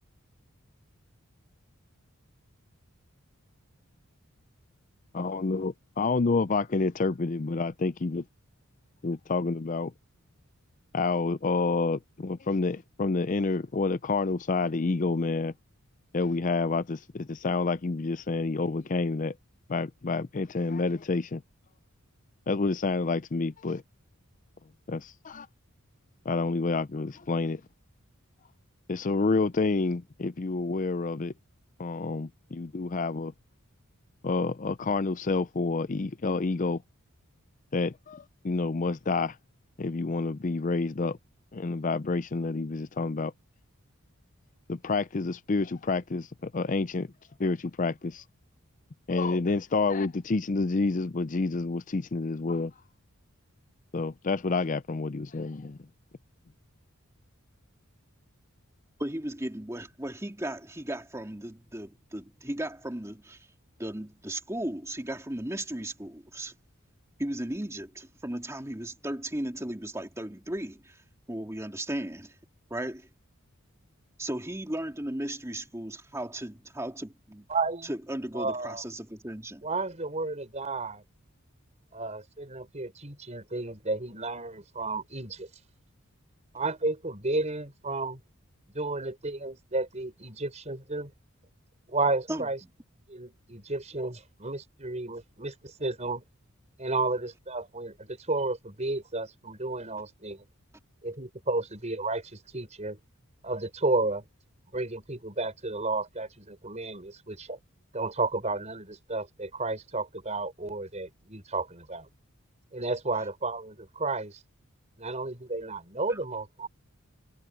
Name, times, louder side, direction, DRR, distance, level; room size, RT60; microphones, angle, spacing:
voice 1, 5.1-8.2 9.0-9.9 10.9-15.5 16.1-19.3 19.7-21.4 22.5-23.8 24.9-25.5 26.3-27.6 28.9-31.3 31.8-33.3 34.2-36.8 37.7-39.4 39.8-41.2 41.5-43.3 44.7-47.1 47.4-48.2 49.1-52.7 53.9-55.8, left 3 dB, 35° left, 0.5 m, -28 dB
voice 2, 59.0-63.5 63.8-66.5 67.2-71.0 71.3-72.3 72.7-73.1 74.2-77.5 77.9-79.7 92.3-92.5 116.1-116.2, right 1 dB, 15° right, 2.8 m, -36 dB
voice 3, 77.5-77.9 78.3-78.8 79.6-81.0 81.9-85.5 86.5-88.2 88.7-91.1 91.9-92.6 93.1-96.2 96.8-100.4 101.0-103.0 103.4-104.2 104.7-107.6 107.9-112.1 112.7-114.4 115.0-116.7, right 3 dB, 30° right, 5.0 m, -32 dB
head